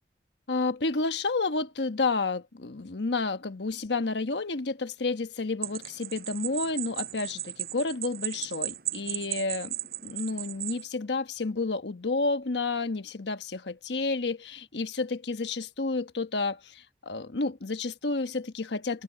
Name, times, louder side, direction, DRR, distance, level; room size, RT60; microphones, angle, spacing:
voice 1, 0.5-9.7 10.0-19.0, left 3 dB, 85° left, 1.1 m, -30 dB
sound 1, 5.6-10.8, right 14 dB, 55° right, 6.1 m, -36 dB
open air
head